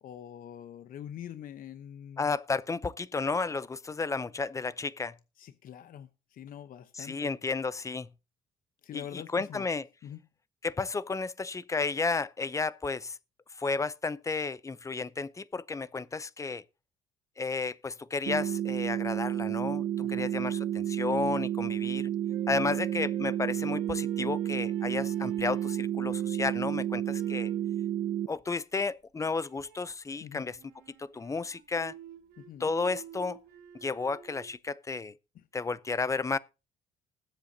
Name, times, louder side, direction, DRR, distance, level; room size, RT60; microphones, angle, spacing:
voice 1, 0.0-2.3 5.4-7.3 8.8-9.7 10.0-10.2 20.0-20.3 30.2-30.5 32.4-32.7 35.3-35.5, left 10 dB, 55° left, 0.9 m, -44 dB
voice 2, 2.2-5.1 6.9-8.1 8.9-9.9 10.6-13.2 13.6-16.6 17.4-19.8 20.1-22.1 22.5-27.5 28.3-30.6 31.0-31.9 32.6-33.4 33.8-35.2 35.5-36.4, left 4 dB, 20° left, 0.5 m, -32 dB
sound 1, 18.3-28.3, right 11 dB, 55° right, 0.8 m, -31 dB
sound 2, 22.3-26.5 27.1-27.7 29.3-30.0 30.6-34.5, right 10 dB, 85° right, 1.7 m, -51 dB
20.0 x 8.0 x 2.8 m
cardioid pair, 110°, 17 cm